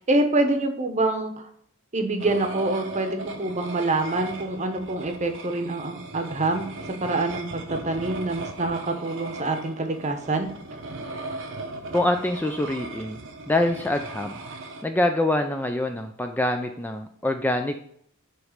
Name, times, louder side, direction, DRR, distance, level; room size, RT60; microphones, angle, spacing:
voice 1, 0.1-1.4 1.9-6.6 7.0-10.5, right 2 dB, 35° right, 6 dB, 0.8 m, -26 dB
sound 1, 2.2-14.8, right 2 dB, 65° right, 0.8 m, -38 dB
voice 2, 11.9-13.2 13.5-14.4 14.8-17.8, left 1 dB, 10° left, 5 dB, 0.3 m, -25 dB
7.9 x 3.2 x 5.0 m, 0.67 s
head